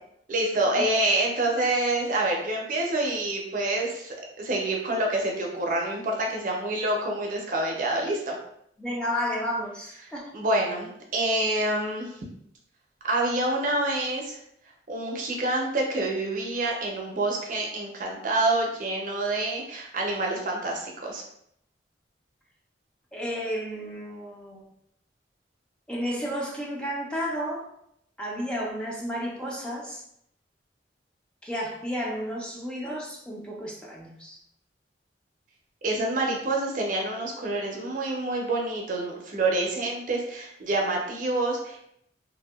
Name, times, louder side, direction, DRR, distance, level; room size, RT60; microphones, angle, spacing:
voice 1, 0.3-8.4 10.3-12.1 13.0-14.4 14.9-21.2 35.8-41.9, right 2 dB, 50° right, -1 dB, 0.5 m, -27 dB
voice 2, 8.8-10.3 23.1-24.7 25.9-27.7 28.2-30.0 31.4-34.4, equal, 5° left, -4 dB, 0.4 m, -32 dB
2.7 x 2.1 x 2.2 m, 0.72 s
head